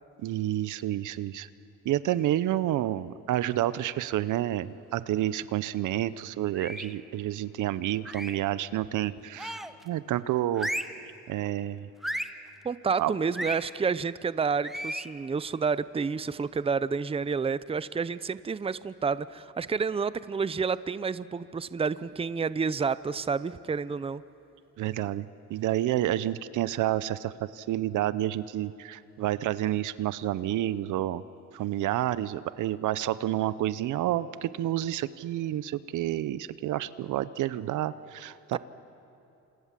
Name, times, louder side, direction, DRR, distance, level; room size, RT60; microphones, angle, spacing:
voice 1, 0.2-1.5 1.8-10.7 11.3-11.9 13.0-13.1 24.8-31.2 31.5-38.6, right 13 dB, 80° right, 16 dB, 0.8 m, -29 dB
sound 1, 6.5-7.0 8.0-8.5 9.4-9.8 10.5-11.0 12.0-12.4 13.3-13.6 14.6-15.1, equal, ahead, 1.0 m, -34 dB
voice 2, 12.6-24.2 38.5-38.6, right 5 dB, 20° right, 16 dB, 0.6 m, -29 dB
29.0 x 27.0 x 7.5 m, 2.7 s
cardioid pair, 90°, 30 cm